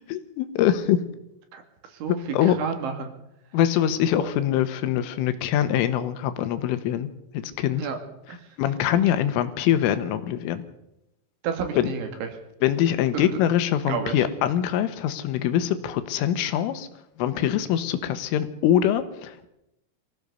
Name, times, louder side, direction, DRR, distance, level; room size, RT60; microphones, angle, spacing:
voice 1, 0.1-1.0 2.3-2.6 3.5-7.1 7.6-7.9 8.6-10.6 11.8-11.9 12.6-16.9 17.2-19.5, left 11 dB, 85° left, 11 dB, 3.8 m, -23 dB
voice 2, 2.0-3.1 4.2-4.3 7.8-8.0 8.3-8.4 11.4-12.3 13.1-13.3 13.9-14.2, right 6 dB, 70° right, 5 dB, 4.5 m, -30 dB
24.0 x 16.5 x 6.9 m, 0.85 s
omnidirectional pair, 5.7 m